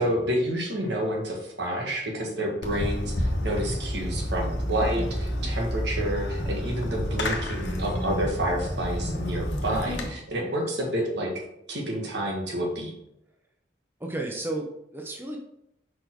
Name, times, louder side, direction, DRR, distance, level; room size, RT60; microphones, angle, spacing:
voice 1, 0.0-11.3 11.7-12.9, right 1 dB, 75° right, 0 dB, 1.5 m, -29 dB
Fireworks, 2.6-10.1, equal, 75° left, 1.0 m, -29 dB
voice 2, 10.4-10.7 14.0-15.4, right 2 dB, 10° right, 1 dB, 0.6 m, -34 dB
5.1 x 4.2 x 4.5 m, 0.79 s
head